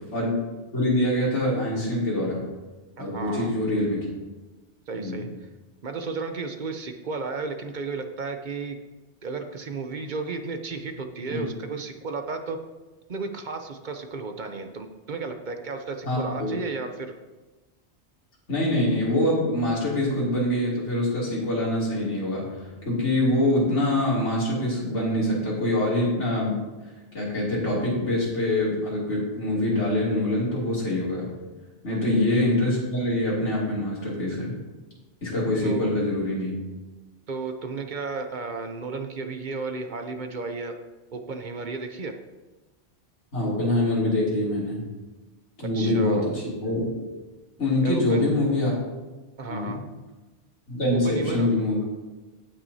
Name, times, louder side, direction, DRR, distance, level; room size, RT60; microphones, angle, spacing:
voice 1, 0.7-2.4 3.0-4.1 4.9-5.2 11.3-11.4 16.0-16.5 18.5-26.6 27.1-31.3 31.8-34.5 35.2-36.5 43.3-44.8 45.6-46.9 47.6-48.7 49.4-49.8 50.7-51.8, left 1 dB, 80° left, -6 dB, 3.0 m, -24 dB
voice 2, 3.0-3.5 4.9-5.3 5.8-8.8 9.2-12.6 13.1-17.1 31.9-32.0 35.6-35.9 37.3-40.7 41.1-42.1 45.6-46.3 47.8-48.3 49.4-49.8 50.9-51.5, right 4 dB, 45° right, 6 dB, 0.8 m, -33 dB
17.0 x 6.0 x 2.8 m, 1.2 s
omnidirectional pair, 1.2 m